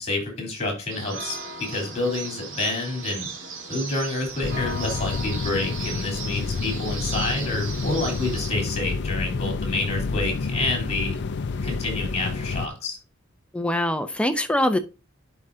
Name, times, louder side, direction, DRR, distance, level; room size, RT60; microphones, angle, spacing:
voice 1, 0.0-3.3 3.7-11.2 11.6-13.0, left 2 dB, 30° left, 3.6 m, -28 dB
sound 1, 0.9-8.5, right 4 dB, 70° right, 1.7 m, -36 dB
sound 2, 4.4-12.7, left 4 dB, 55° left, 0.5 m, -29 dB
voice 2, 13.5-14.8, left 1 dB, 5° left, 0.6 m, -23 dB
11.0 x 4.9 x 2.7 m
head